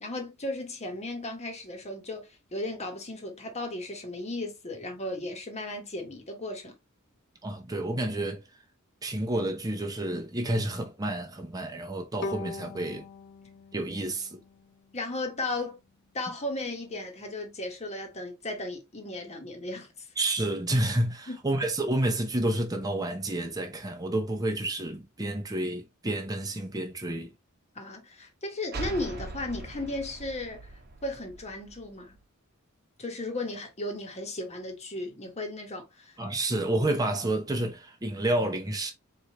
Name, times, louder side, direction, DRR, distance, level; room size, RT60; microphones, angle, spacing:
voice 1, 0.0-6.8 14.9-15.8 16.1-20.1 21.3-21.4 27.7-30.7 31.0-32.2 33.0-36.2, left 2 dB, 30° left, 1.2 m, -35 dB
voice 2, 7.4-8.4 9.0-13.0 13.7-14.4 20.2-27.3 36.2-38.9, right 1 dB, 20° right, 0.8 m, -29 dB
Bowed string instrument, 12.2-15.3, left 3 dB, 55° left, 0.6 m, -41 dB
sound 1, 28.7-32.2, right 2 dB, 50° right, 1.0 m, -41 dB
4.3 x 3.3 x 3.0 m
head